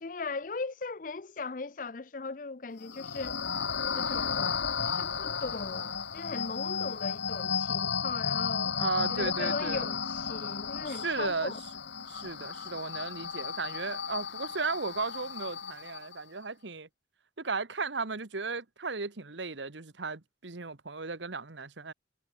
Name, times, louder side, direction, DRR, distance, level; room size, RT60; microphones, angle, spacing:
voice 1, 0.0-3.4 3.9-8.8 9.1-11.6, left 4 dB, 45° left, 0.6 m, -38 dB
sound 1, 2.8-16.2, left 6 dB, 70° left, 1.5 m, -34 dB
voice 2, 8.8-9.9 10.9-11.5 12.1-16.9 17.4-21.9, right 4 dB, 75° right, 1.4 m, -35 dB
head